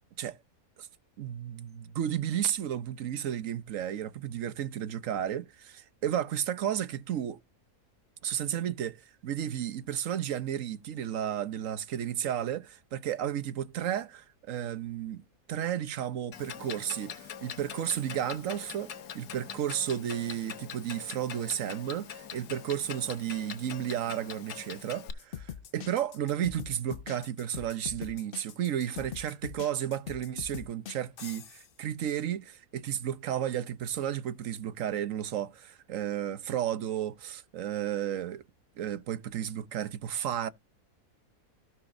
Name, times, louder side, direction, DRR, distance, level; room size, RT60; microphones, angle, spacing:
voice 1, 1.2-7.4 8.2-12.6 12.9-15.2 15.5-38.4 38.8-40.5, right 10 dB, 60° right, 1.2 m, -33 dB
Clock, 16.3-25.1, left 8 dB, 85° left, 1.5 m, -43 dB
sound 1, 25.2-31.7, left 9 dB, 55° left, 0.6 m, -42 dB
16.5 x 6.0 x 2.6 m
omnidirectional pair, 1.6 m